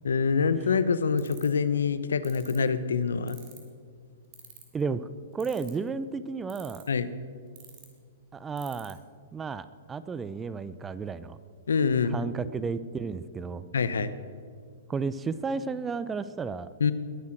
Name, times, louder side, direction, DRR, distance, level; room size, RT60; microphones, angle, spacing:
voice 1, 0.0-3.4 6.9-7.1 11.7-12.2 13.7-14.1 16.8-16.9, left 5 dB, 80° left, 14 dB, 0.9 m, -25 dB
sound 1, 1.2-1.6 2.2-2.6 3.3-3.7 4.3-4.8 5.4-5.9 6.5-7.0 7.6-7.9 8.6-8.9, right 13 dB, 45° right, 3.7 m, -47 dB
voice 2, 4.7-6.8 8.3-9.0 9.3-11.4 12.1-13.7 14.9-16.7, right 5 dB, 15° right, 15 dB, 0.7 m, -33 dB
21.0 x 9.6 x 6.4 m, 2.1 s
hypercardioid pair, 115°, 0 cm